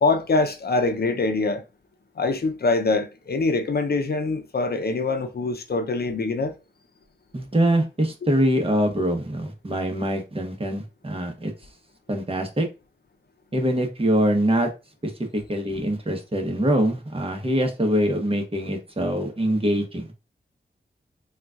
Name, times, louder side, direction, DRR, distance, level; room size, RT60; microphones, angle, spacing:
voice 1, 0.0-1.6 2.2-6.5, left 3 dB, 60° left, 0.6 m, -24 dB
voice 2, 7.3-11.5 12.1-12.7 13.5-14.7 15.0-20.1, right 1 dB, 30° right, 1.0 m, -24 dB
3.9 x 2.4 x 2.4 m
cardioid pair, 45°, 19 cm